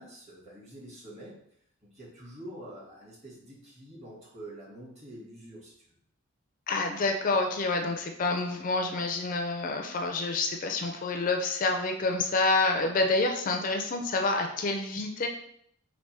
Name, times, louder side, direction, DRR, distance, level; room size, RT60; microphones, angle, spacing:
voice 1, 0.0-1.4 1.8-6.0, right 1 dB, 30° right, -5 dB, 1.4 m, -46 dB
voice 2, 6.7-15.3, left 3 dB, 40° left, 4 dB, 0.4 m, -28 dB
3.3 x 2.5 x 4.3 m, 0.69 s
head